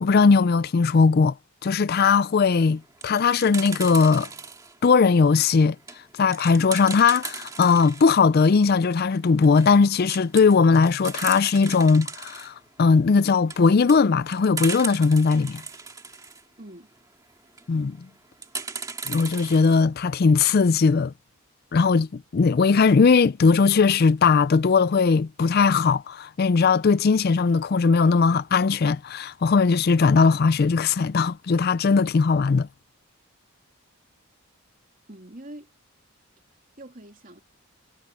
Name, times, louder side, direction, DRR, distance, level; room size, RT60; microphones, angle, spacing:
voice 1, 0.0-1.3 1.6-4.3 4.8-5.8 6.1-15.6 17.7-18.0 19.1-21.1 21.7-32.7, left 5 dB, 45° left, 0.4 m, -19 dB
sound 1, 2.7-4.8 5.3-8.1 8.5-8.6 8.8-8.9 9.3-9.8 10.1-12.5 13.1-16.4 17.4-17.7 18.4-19.8, right 5 dB, 15° right, 2.0 m, -36 dB
voice 2, 16.6-16.9 35.1-35.7 36.8-37.4, right 1 dB, 40° right, 3.1 m, -43 dB
head